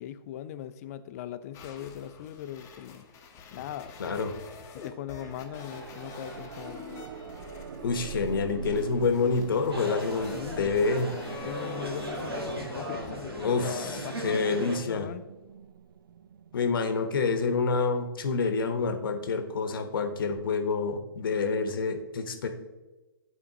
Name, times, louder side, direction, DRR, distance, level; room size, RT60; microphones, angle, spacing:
voice 1, 0.0-3.0 3.5-4.3 4.7-6.9 10.3-10.8 11.4-15.2, left 10 dB, 40° left, 12 dB, 0.4 m, -40 dB
sound 1, 1.5-13.4, left 5 dB, 20° left, 0.8 m, -45 dB
voice 2, 4.0-4.3 7.8-11.1 13.4-15.1 16.5-22.5, left 4 dB, 65° left, 7 dB, 0.9 m, -28 dB
sound 2, 5.1-18.0 20.4-20.5, right 7 dB, 60° right, 0.4 m, -44 dB
sound 3, 9.7-14.8, right 1 dB, 80° right, 1.4 m, -37 dB
11.0 x 4.2 x 2.9 m, 1.2 s
figure-of-eight pair, 125°, 13 cm